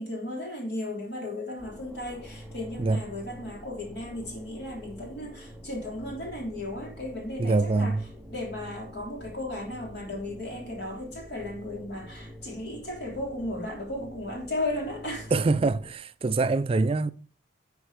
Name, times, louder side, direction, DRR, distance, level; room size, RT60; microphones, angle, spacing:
voice 1, 0.0-8.0 8.3-15.6, left 1 dB, 55° left, 3.2 m, -35 dB
sound 1, 1.6-15.9, equal, ahead, 0.8 m, -46 dB
voice 2, 7.4-8.0 15.3-17.1, right 3 dB, 30° right, 0.3 m, -24 dB
10.5 x 4.5 x 4.8 m
head